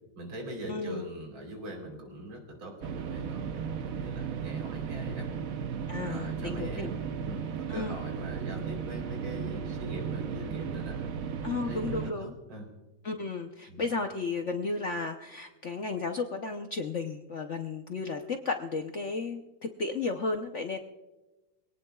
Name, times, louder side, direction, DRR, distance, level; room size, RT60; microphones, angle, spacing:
voice 1, 0.2-5.3 6.0-11.0 11.7-12.7 13.7-13.9, right 1 dB, 85° right, 2 dB, 4.3 m, -42 dB
voice 2, 0.7-1.1 5.9-6.9 7.7-7.9 11.4-12.3 13.0-20.8, left 4 dB, 55° left, 4 dB, 0.8 m, -33 dB
sound 1, 2.8-12.1, right 7 dB, 60° right, 0.9 m, -35 dB
24.5 x 18.0 x 2.3 m, 1.1 s
omnidirectional pair, 2.2 m